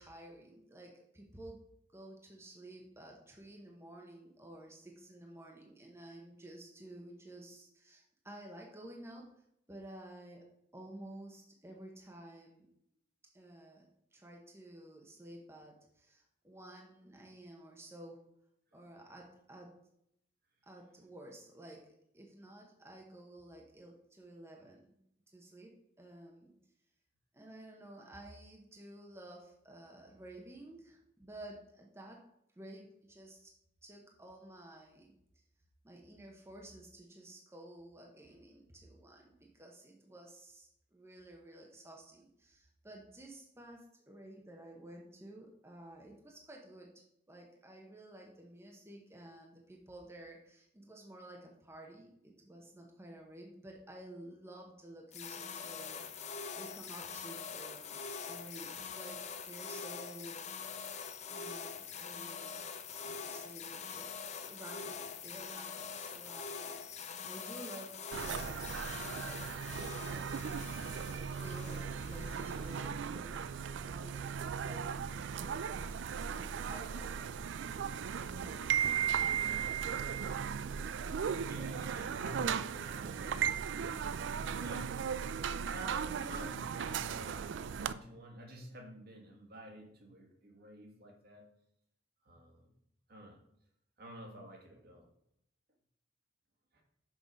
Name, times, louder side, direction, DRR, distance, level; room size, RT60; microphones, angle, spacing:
voice 1, 0.0-1.6 1.9-10.5 10.7-12.7 13.3-18.2 18.7-19.8 20.6-25.0 25.3-26.5 27.3-32.2 32.5-33.5 33.8-35.4 35.8-46.9 47.3-58.0 58.3-60.5 61.3-62.6 62.9-64.1 64.4-69.5 70.1-70.7 71.1-75.7 76.2-77.3 78.1-78.7, right 1 dB, 15° right, 0 dB, 0.9 m, -52 dB
sound 1, 55.1-73.1, left 6 dB, 40° left, 0.6 m, -44 dB
sound 2, 68.1-87.9, right 7 dB, 80° right, 0.4 m, -37 dB
voice 2, 81.0-83.5 84.3-84.9 85.7-91.5 92.2-92.7 93.1-93.4 94.0-95.1 96.7-96.8, right 1 dB, 55° right, 2 dB, 1.7 m, -50 dB
6.2 x 5.5 x 5.2 m, 0.77 s
head